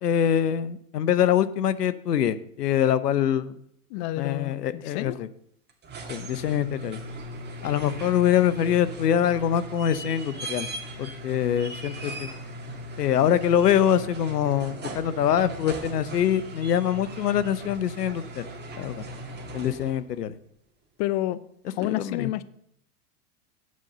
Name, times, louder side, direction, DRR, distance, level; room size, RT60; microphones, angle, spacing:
voice 1, 0.0-3.6 4.2-5.3 6.1-7.0 7.6-10.7 11.0-12.3 13.0-18.4 18.8-19.0 19.5-20.4 21.8-22.3, left 9 dB, 90° left, 15 dB, 0.8 m, -24 dB
voice 2, 3.9-5.2 21.0-21.4 21.7-22.4, left 15 dB, 45° left, 17 dB, 0.6 m, -29 dB
sound 1, 5.7-20.1 21.8-21.9, right 1 dB, 20° right, 2.1 m, -38 dB
9.6 x 5.4 x 7.8 m, 0.70 s
hypercardioid pair, 110°, 46 cm